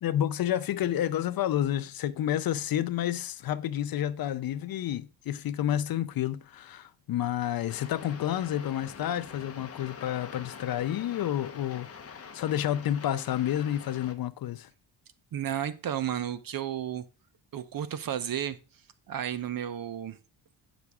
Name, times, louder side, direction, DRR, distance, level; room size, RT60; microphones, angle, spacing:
voice 1, 0.0-14.7, left 11 dB, 50° left, 0.5 m, -30 dB
sound 1, 7.7-14.1, left 6 dB, 30° left, 0.9 m, -45 dB
voice 2, 15.3-17.0 17.5-18.6 19.1-20.2, right 10 dB, 45° right, 0.8 m, -32 dB
9.6 x 6.0 x 3.5 m
cardioid pair, 120°, 46 cm